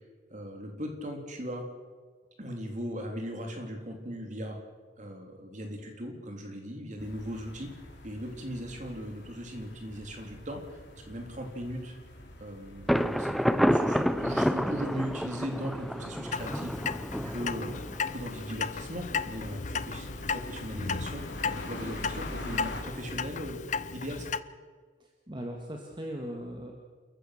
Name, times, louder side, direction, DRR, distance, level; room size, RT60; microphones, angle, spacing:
voice 1, 0.3-1.7 2.4-4.6 5.0-7.7 8.0-11.9 12.4-13.3 13.7-16.8 17.2-17.8 18.1-24.3, equal, 40° right, 3 dB, 3.5 m, -38 dB
sound 1, 7.0-22.8, left 1 dB, 75° left, 3.9 m, -46 dB
Thunder, 12.9-18.5, equal, ahead, 0.6 m, -29 dB
Clock, 16.3-24.4, left 5 dB, 40° left, 0.7 m, -35 dB
voice 2, 17.2-17.8 25.0-26.7, equal, 25° right, 1 dB, 1.9 m, -40 dB
29.0 x 14.5 x 6.6 m, 1.5 s
head